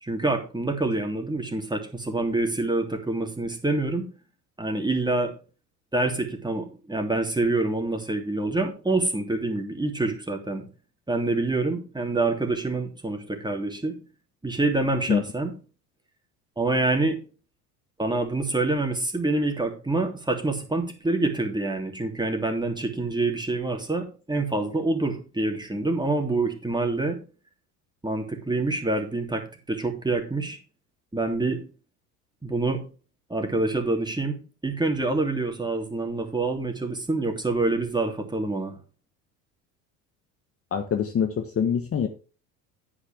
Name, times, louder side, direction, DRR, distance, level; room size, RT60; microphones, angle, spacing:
voice 1, 0.0-4.1 4.6-5.3 5.9-10.7 11.1-14.0 14.4-15.5 16.6-17.2 18.0-27.2 28.0-30.6 31.1-31.7 32.4-32.9 33.3-34.4 34.6-38.7, right 2 dB, 10° right, 3 dB, 3.1 m, -26 dB
voice 2, 40.7-42.1, left 7 dB, 30° left, 7 dB, 1.3 m, -25 dB
9.6 x 8.8 x 3.5 m, 0.34 s
hypercardioid pair, 70°, 45 cm